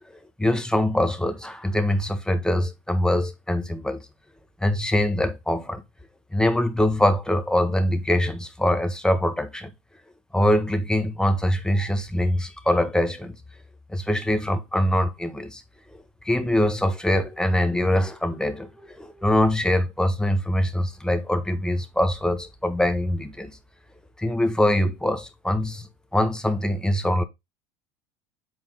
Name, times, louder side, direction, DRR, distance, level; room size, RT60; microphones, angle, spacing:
voice 1, 0.4-4.0 4.6-5.8 6.3-9.7 10.3-13.3 13.9-15.6 15.9-23.6 24.2-27.2, left 1 dB, 5° left, 1.3 m, -23 dB
8.0 x 4.3 x 3.9 m
hypercardioid pair, 80°, 16 cm